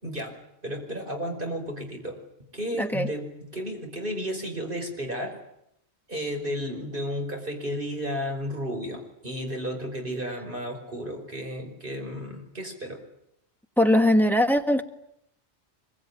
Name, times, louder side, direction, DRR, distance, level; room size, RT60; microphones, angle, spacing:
voice 1, 0.0-0.4 0.6-2.2 2.5-5.4 6.1-13.0, equal, 50° right, 2 dB, 5.6 m, -33 dB
voice 2, 2.8-3.1 13.8-14.8, left 1 dB, ahead, 7 dB, 1.5 m, -20 dB
25.0 x 23.0 x 9.8 m, 0.78 s
omnidirectional pair, 1.1 m